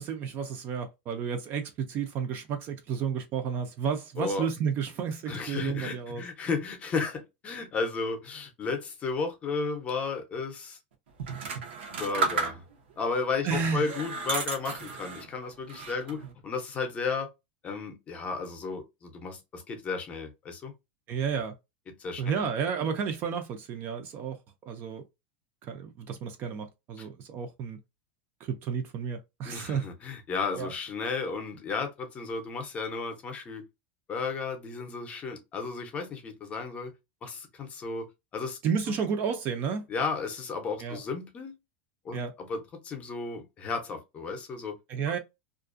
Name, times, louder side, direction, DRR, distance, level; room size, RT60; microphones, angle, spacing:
voice 1, 0.0-6.2 13.4-14.0 21.1-21.5 22.2-24.4 24.6-25.0 25.6-27.8 28.4-29.8 30.5-30.7 38.6-39.8 40.8-41.0 42.1-42.3 44.9-45.2, right 6 dB, 35° right, 0.4 m, -31 dB
voice 2, 5.3-10.8 12.0-12.6 13.0-17.3 17.6-20.7 21.9-22.4 27.0-27.1 29.4-33.6 34.1-36.9 37.2-38.1 38.3-38.6 39.9-41.5 42.0-44.8, left 4 dB, 20° left, 0.6 m, -33 dB
sound 1, 11.2-12.9 13.5-15.3 15.7-16.3, right 4 dB, 90° right, 0.8 m, -33 dB
2.4 x 2.2 x 2.4 m
supercardioid pair, 150°, 6 cm